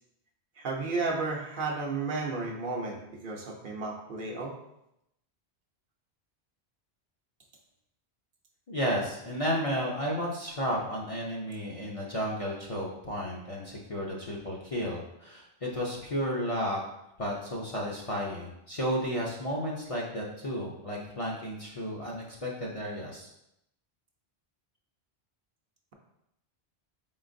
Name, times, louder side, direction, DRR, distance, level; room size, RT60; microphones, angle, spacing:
voice 1, 0.6-4.5, right 3 dB, 60° right, 0 dB, 0.7 m, -33 dB
voice 2, 8.7-16.8 17.2-23.3, equal, 45° left, -3 dB, 0.5 m, -33 dB
4.2 x 3.8 x 2.5 m, 0.82 s
omnidirectional pair, 1.1 m